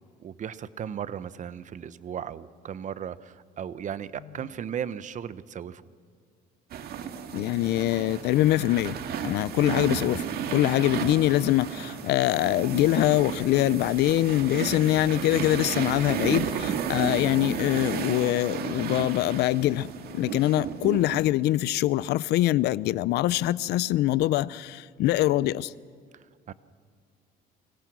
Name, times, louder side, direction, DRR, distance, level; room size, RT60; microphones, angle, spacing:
voice 1, 0.2-5.8 26.1-26.5, right 8 dB, 45° right, 1.0 m, -36 dB
sound 1, 6.7-21.2, right 8 dB, 65° right, 2.1 m, -33 dB
voice 2, 7.3-9.0 9.2-25.7, left 15 dB, 80° left, 0.6 m, -24 dB
29.5 x 24.0 x 6.2 m
cardioid pair, 110°, 17 cm